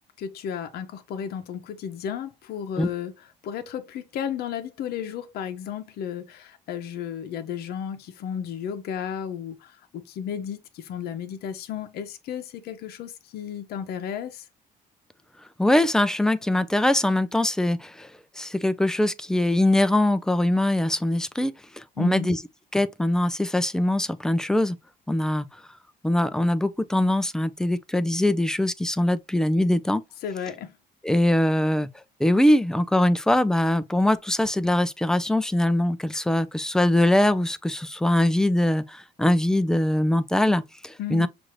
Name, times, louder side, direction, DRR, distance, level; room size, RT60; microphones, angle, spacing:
voice 1, 0.2-14.5 22.0-22.3 30.2-30.7 41.0-41.3, left 8 dB, 70° left, 0.7 m, -33 dB
voice 2, 15.6-18.1 18.4-22.4 22.7-24.8 25.1-25.5 26.0-30.0 31.0-31.9 32.2-41.3, left 1 dB, 5° left, 0.4 m, -22 dB
6.1 x 2.6 x 3.1 m
cardioid pair, 110°, 17 cm